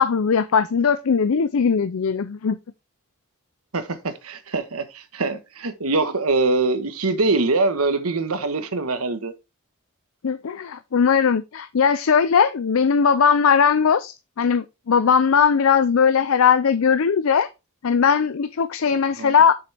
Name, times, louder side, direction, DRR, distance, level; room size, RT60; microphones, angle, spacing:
voice 1, 0.0-2.6 10.2-17.5 17.8-19.6, left 6 dB, 65° left, 0.5 m, -19 dB
voice 2, 3.7-9.3 18.9-19.4, right 3 dB, 80° right, 1.3 m, -23 dB
7.1 x 6.9 x 3.4 m
head